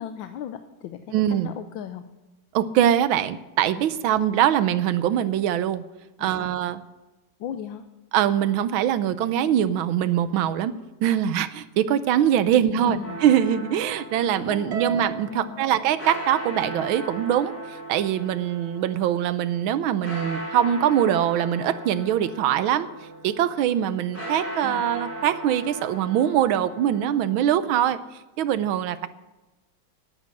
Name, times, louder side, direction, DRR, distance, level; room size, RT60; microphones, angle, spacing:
voice 1, 0.0-1.1 1.4-2.1 6.2-6.5 7.4-7.8 12.7-13.2 14.3-15.0 15.3-15.7 24.6-24.8, left 9 dB, 80° left, 9 dB, 1.4 m, -37 dB
voice 2, 1.1-1.5 2.5-5.8 6.2-6.8 8.1-10.7 11.0-17.5 17.9-22.9 23.2-28.0 28.4-29.1, right 10 dB, 85° right, 14 dB, 1.5 m, -23 dB
sound 1, 13.0-27.9, right 1 dB, 5° left, 5.4 m, -38 dB
Harp, 14.7-17.2, right 10 dB, 50° right, 0.8 m, -36 dB
11.0 x 8.3 x 9.7 m, 1.1 s
omnidirectional pair, 2.2 m